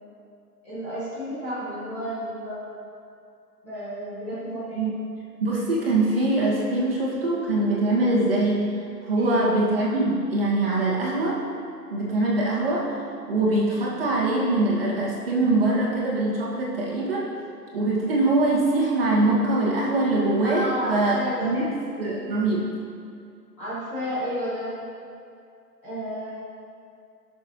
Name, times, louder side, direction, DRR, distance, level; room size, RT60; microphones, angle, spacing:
voice 1, 0.6-2.7 3.6-4.9 9.1-9.4 20.4-21.6 23.6-24.7 25.8-26.3, equal, 10° left, -16 dB, 1.4 m, -31 dB
voice 2, 5.4-8.7 9.0-11.4 11.9-13.0 13.3-17.3 17.7-22.7, right 2 dB, 35° right, -5 dB, 2.1 m, -23 dB
18.5 x 6.8 x 3.2 m, 2.4 s
hypercardioid pair, 175°, 49 cm